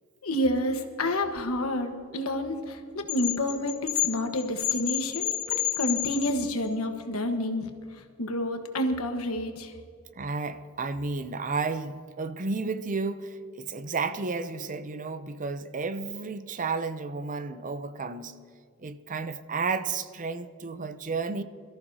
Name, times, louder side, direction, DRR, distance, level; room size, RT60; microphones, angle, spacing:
voice 1, 0.2-7.7 8.2-9.7, left 1 dB, 85° left, 1.3 m, -29 dB
sound 1, 3.1-6.7, left 14 dB, 65° left, 2.5 m, -29 dB
voice 2, 10.1-18.3 18.8-21.4, right 4 dB, 40° right, 0.6 m, -32 dB
22.5 x 14.0 x 2.8 m
head